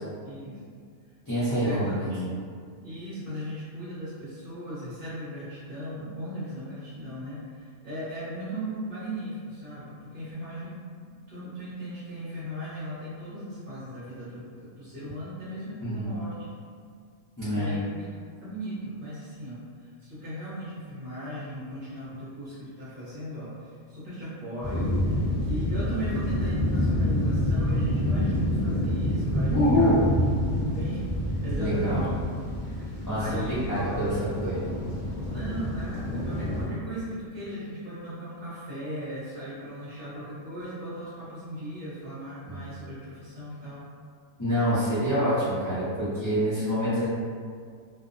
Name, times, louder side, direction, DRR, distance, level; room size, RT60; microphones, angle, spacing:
voice 1, 0.2-0.8 1.5-2.3 2.8-10.8 11.1-16.5 17.4-18.1 18.4-19.6 20.0-29.9 30.6-31.0 31.4-32.1 32.8-34.0 35.3-43.9, equal, 45° right, -11 dB, 0.8 m, -37 dB
voice 2, 1.2-2.1 15.8-16.1 17.4-17.8 29.5-30.0 31.5-32.0 33.0-34.1 34.4-34.6 42.4-42.6 44.4-47.1, equal, 30° left, -13 dB, 0.4 m, -26 dB
sound 1, 24.6-36.7, left 1 dB, 10° left, 0.9 m, -27 dB
2.5 x 2.0 x 2.5 m, 2.1 s
omnidirectional pair, 1.4 m